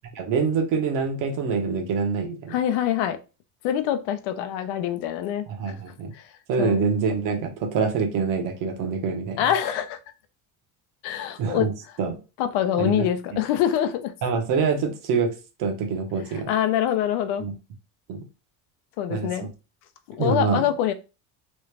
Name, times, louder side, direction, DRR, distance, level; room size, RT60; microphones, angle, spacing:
voice 1, 0.1-2.6 5.5-6.1 6.5-9.4 11.4-11.7 12.0-12.2 12.8-13.1 14.2-15.3 15.6-16.5 17.4-17.5 18.1-18.2 19.1-19.3 20.2-20.7, right 5 dB, 55° right, 0.9 m, -25 dB
voice 2, 2.5-3.2 3.6-5.8 6.1-6.2 6.6-6.9 9.4-10.0 11.0-11.7 12.4-14.1 16.5-17.5 19.0-19.5 20.1-20.9, left 10 dB, 75° left, 0.6 m, -25 dB
3.1 x 2.4 x 3.2 m
cardioid pair, 150°, 39 cm